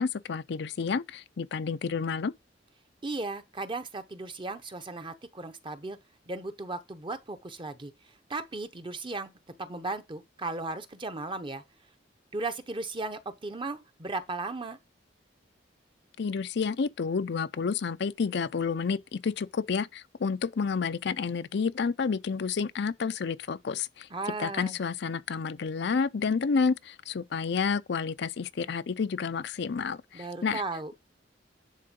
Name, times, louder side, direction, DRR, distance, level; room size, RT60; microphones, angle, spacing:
voice 1, 0.0-2.3 16.2-24.1 24.4-30.6, left 5 dB, 65° left, 0.5 m, -30 dB
voice 2, 3.0-6.0 6.3-7.9 8.3-9.3 9.6-11.6 12.3-14.8 24.1-24.8 30.1-30.9, right 3 dB, 30° right, 0.9 m, -36 dB
10.5 x 3.7 x 5.3 m
head